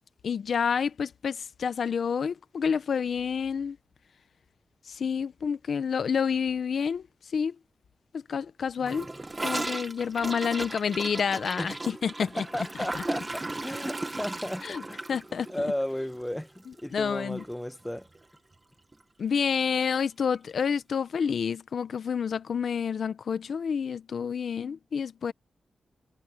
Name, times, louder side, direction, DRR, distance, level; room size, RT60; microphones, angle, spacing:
voice 1, 0.2-3.8 4.9-7.6 8.1-9.1 9.4-12.4 12.9-13.0 14.6-14.8 15.1-15.5 16.9-17.4 19.2-25.3, left 6 dB, 70° left, 0.7 m, -29 dB
voice 2, 8.8-9.2 11.6-11.7 12.2-15.1 15.5-18.1, left 1 dB, 5° left, 1.2 m, -34 dB
Gurgling / Toilet flush, 8.9-17.1 17.4-17.5 17.8-18.2 18.5-18.6 18.9-19.0 20.0-20.1, right 2 dB, 25° right, 1.3 m, -36 dB
wide cardioid pair, 100°, 0 cm